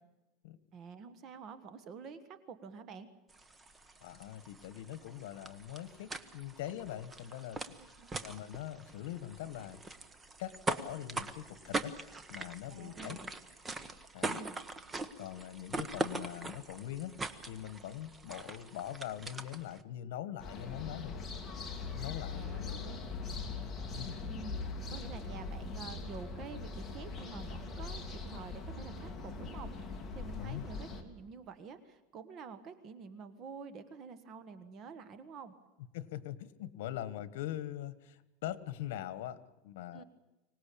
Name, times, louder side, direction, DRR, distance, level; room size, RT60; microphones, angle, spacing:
voice 1, 0.7-3.1 7.8-8.1 12.7-13.3 14.2-14.6 22.3-23.0 24.2-24.6 24.9-35.5 39.9-40.0, right 5 dB, 35° right, 11 dB, 1.4 m, -48 dB
sound 1, 3.3-19.8, right 2 dB, 15° right, 1.1 m, -42 dB
voice 2, 4.0-7.6 8.2-9.8 10.4-12.0 12.3-13.2 14.1-14.4 15.2-17.2 17.4-21.2 21.9-22.7 23.9-24.2 30.4-30.6 35.9-40.0, left 12 dB, 75° left, 16 dB, 1.5 m, -42 dB
sound 2, 20.4-31.0, left 4 dB, 15° left, 2.7 m, -41 dB
25.0 x 18.5 x 8.6 m, 1.1 s
supercardioid pair, 160°, 0 cm